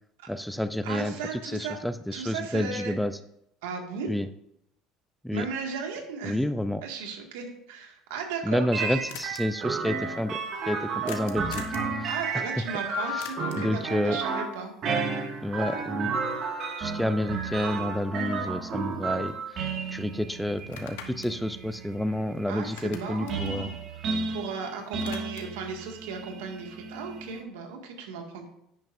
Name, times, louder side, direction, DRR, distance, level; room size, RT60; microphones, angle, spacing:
voice 1, 0.3-3.2 4.1-4.3 5.2-5.5 6.2-6.8 8.4-10.4 10.7-11.7 12.0-12.1 12.3-12.5 13.1-13.2 13.6-14.2 15.4-16.2 16.8-23.7 24.1-24.2, left 1 dB, ahead, 11 dB, 0.5 m, -29 dB
voice 2, 0.8-1.8 2.1-2.9 3.6-4.1 5.3-6.4 6.8-9.0 12.1-14.7 22.5-23.8 24.3-28.5, right 5 dB, 85° right, 2 dB, 2.0 m, -36 dB
sound 1, 8.1-8.2 8.4-8.5 8.7-8.8 9.1-9.4 11.1-11.9 13.2-13.7 17.9-18.0 18.4-19.6 19.9-20.0 20.6-22.4 22.6-24.5 24.8-25.6, left 8 dB, 90° left, 1.1 m, -45 dB
sound 2, 8.7-27.4, right 4 dB, 50° right, 1.9 m, -33 dB
10.5 x 9.2 x 2.6 m, 0.77 s
supercardioid pair, 105°, 0 cm